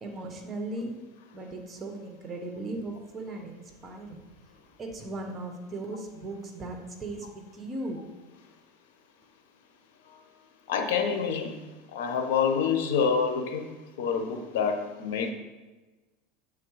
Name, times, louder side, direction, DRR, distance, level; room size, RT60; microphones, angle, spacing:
voice 1, 0.0-1.0 1.3-4.2 4.8-8.0, right 2 dB, 25° right, 3 dB, 1.0 m, -37 dB
voice 2, 10.7-11.5 11.9-13.7 14.0-15.3, left 6 dB, 85° left, 5 dB, 0.9 m, -27 dB
7.7 x 3.8 x 4.7 m, 1.2 s
supercardioid pair, 135°, 0 cm